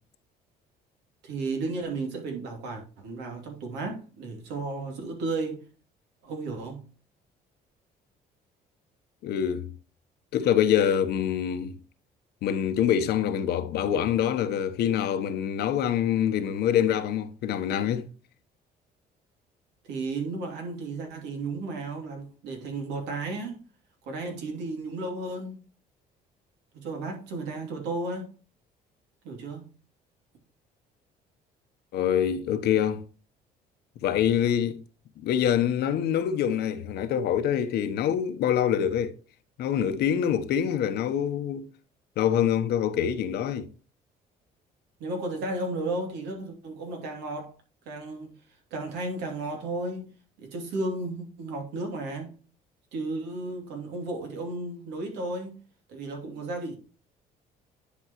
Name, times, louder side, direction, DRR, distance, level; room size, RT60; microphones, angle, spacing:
voice 1, 1.2-5.6 6.2-6.8 19.9-23.6 24.1-25.6 26.7-28.3 29.2-29.6 45.0-47.5 47.9-48.3 48.7-50.1 50.4-52.3 52.9-55.6 55.9-56.8, right 2 dB, 90° right, 2.8 m, -33 dB
voice 2, 9.2-9.7 10.3-11.8 12.4-18.1 31.9-33.0 34.0-34.8 35.2-39.1 39.6-41.6 42.2-43.7, left 9 dB, 75° left, 1.0 m, -25 dB
10.5 x 5.4 x 3.0 m
cardioid pair, 110°, 17 cm